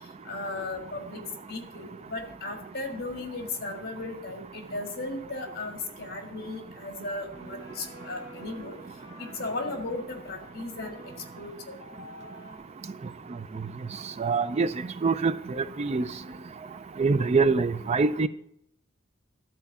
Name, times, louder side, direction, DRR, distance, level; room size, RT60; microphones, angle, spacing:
voice 1, 0.3-1.2 1.5-8.8 9.2-10.9 11.4-11.8, left 2 dB, 50° left, 3 dB, 1.8 m, -36 dB
sound 1, 7.3-12.6, right 1 dB, 20° left, 4.4 m, -48 dB
voice 2, 14.2-14.7 15.0-16.1 17.0-18.3, right 4 dB, 35° right, 13 dB, 0.4 m, -24 dB
12.5 x 4.5 x 7.1 m, 0.75 s
head